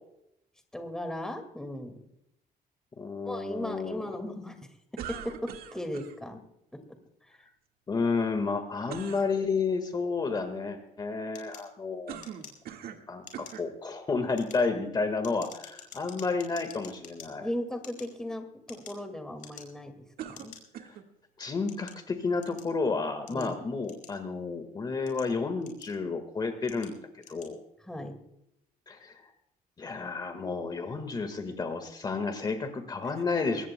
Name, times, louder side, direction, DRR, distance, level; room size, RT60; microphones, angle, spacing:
voice 1, 0.7-2.0 3.2-4.7 5.1-6.4 6.7-7.5 17.3-20.6 23.3-23.5 27.8-28.2, left 1 dB, 5° left, 6 dB, 2.0 m, -37 dB
voice 2, 3.0-4.3 7.9-12.2 13.1-17.5 20.8-21.0 21.4-27.0 27.3-27.6 28.9-29.3 29.8-33.7, left 4 dB, 25° left, 7 dB, 1.6 m, -31 dB
sound 1, 5.0-6.2 8.9-9.3 12.1-13.1 13.3-13.7 14.5-14.6 20.2-21.1, right 9 dB, 75° right, 1.7 m, -41 dB
sound 2, 11.3-12.9 13.2-13.7 14.2-17.3 17.7-19.1 19.4-19.9 20.3-20.6 21.3-22.7 23.3-24.4 24.9-26.1 26.6-26.9 27.2-27.5, left 7 dB, 55° left, 5.2 m, -49 dB
24.0 x 19.0 x 2.2 m, 0.81 s
cardioid pair, 170°, 16 cm